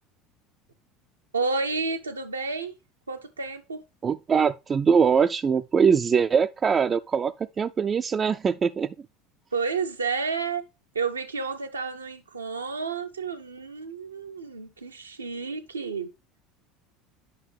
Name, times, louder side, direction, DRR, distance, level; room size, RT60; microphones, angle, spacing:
voice 1, 1.3-2.8 3.1-3.8 9.5-10.6 10.9-16.1, right 4 dB, 85° right, 0.7 m, -30 dB
voice 2, 4.0-8.9, right 6 dB, 30° right, 0.3 m, -22 dB
9.0 x 5.6 x 3.2 m
figure-of-eight pair, 70°, 0 cm